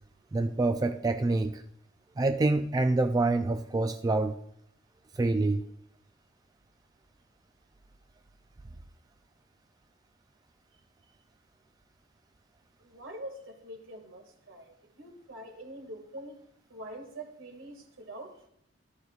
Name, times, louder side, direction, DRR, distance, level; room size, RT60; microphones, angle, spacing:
voice 1, 0.3-1.6 2.2-4.4 5.2-5.6, right 2 dB, 20° right, 7 dB, 0.3 m, -26 dB
voice 2, 12.8-16.4 16.7-18.3, right 1 dB, 80° right, 3 dB, 2.0 m, -44 dB
13.5 x 11.0 x 2.4 m, 0.73 s
head